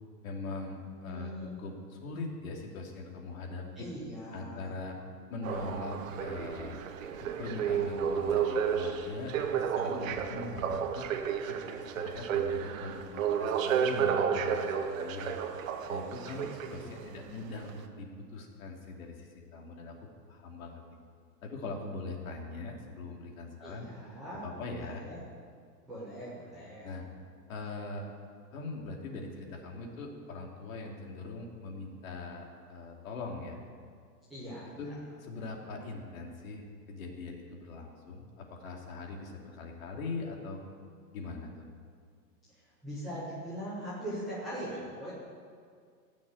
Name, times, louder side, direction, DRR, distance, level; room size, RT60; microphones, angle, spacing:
voice 1, 0.2-1.3 1.6-3.6 4.3-5.0 5.3-6.8 7.2-11.1 11.5-15.4 15.9-20.0 20.3-20.8 21.4-23.9 24.4-25.0 26.8-27.0 27.5-28.1 28.5-33.6 34.8-40.6 41.1-41.7, left 3 dB, 55° left, 1 dB, 2.9 m, -41 dB
voice 2, 1.0-1.6 3.8-4.7 16.3-17.2 23.6-24.5 24.8-25.2 25.9-26.9 34.3-34.9 42.8-45.1, equal, ahead, -18 dB, 0.4 m, -41 dB
sound 1, 5.4-17.0 17.7-17.8, right 7 dB, 50° right, 1.2 m, -32 dB
17.0 x 6.6 x 9.2 m, 2.1 s
supercardioid pair, 170°, 49 cm